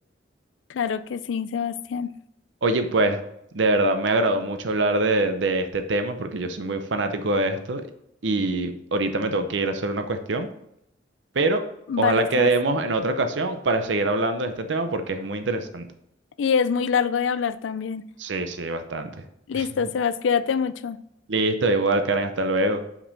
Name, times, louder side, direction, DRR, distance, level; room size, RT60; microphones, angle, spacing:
voice 1, 0.7-2.1 11.9-12.5 16.4-18.0 19.5-21.0, left 6 dB, 80° left, 15 dB, 0.4 m, -25 dB
voice 2, 2.6-3.2 3.5-7.9 8.2-10.5 11.3-11.6 12.0-15.9 18.2-19.1 19.5-19.7 21.3-22.8, right 2 dB, 75° right, 8 dB, 0.7 m, -24 dB
5.9 x 5.3 x 4.1 m, 0.75 s
head